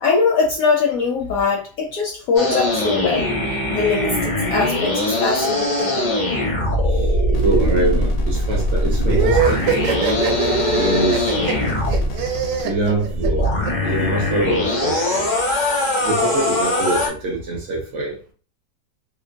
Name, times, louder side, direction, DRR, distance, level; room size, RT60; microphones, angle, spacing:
voice 1, 0.0-3.3 3.7-6.1, left 4 dB, 70° left, 0.8 m, -21 dB
sound 1, 2.3-12.1 13.1-17.1, left 1 dB, 55° left, 0.5 m, -21 dB
voice 2, 6.9-9.8 10.7-11.3 12.6-13.5 13.8-15.3 16.0-18.2, right 2 dB, 60° right, 0.8 m, -24 dB
sound 2, 7.3-12.6, left 1 dB, 85° left, 1.2 m, -31 dB
sound 3, 9.1-13.7, right 6 dB, 90° right, 1.2 m, -22 dB
3.0 x 2.0 x 2.5 m
omnidirectional pair, 1.8 m